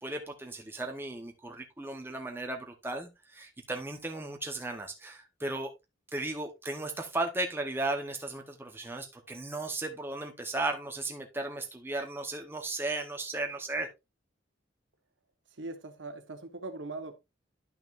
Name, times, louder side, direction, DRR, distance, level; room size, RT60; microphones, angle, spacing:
voice 1, 0.0-5.7 6.1-13.9, right 2 dB, 10° right, 0.9 m, -35 dB
voice 2, 15.5-17.2, right 2 dB, 80° right, 1.2 m, -41 dB
11.0 x 5.8 x 2.5 m
head